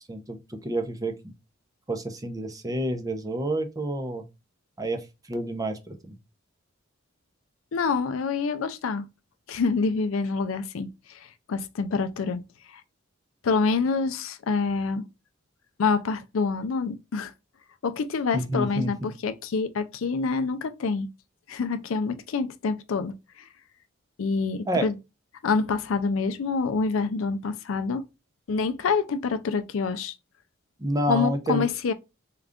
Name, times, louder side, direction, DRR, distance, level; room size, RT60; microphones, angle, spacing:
voice 1, 0.1-1.1 1.9-4.2 4.8-5.0 5.3-6.2 18.3-19.1 24.7-24.9 30.8-31.7, right 1 dB, 20° right, 0.6 m, -29 dB
voice 2, 7.7-9.1 9.5-12.4 12.7-12.8 13.4-15.1 15.8-17.3 17.8-21.1 21.5-23.5 24.2-24.9 25.4-28.0 28.5-30.1 31.1-31.9, left 4 dB, 70° left, 0.4 m, -27 dB
3.7 x 2.4 x 3.5 m
head